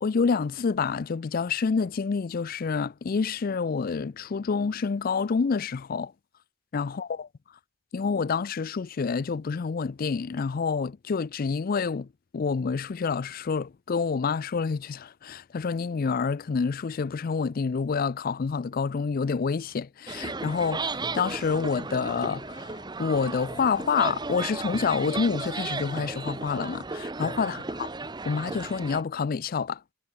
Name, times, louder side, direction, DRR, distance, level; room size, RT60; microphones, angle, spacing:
voice 1, 0.0-6.1 6.7-7.3 7.9-12.1 12.3-27.6 28.3-29.8, left 5 dB, 40° left, 0.4 m, -28 dB
sound 1, 20.1-29.0, right 3 dB, 20° right, 0.7 m, -35 dB
head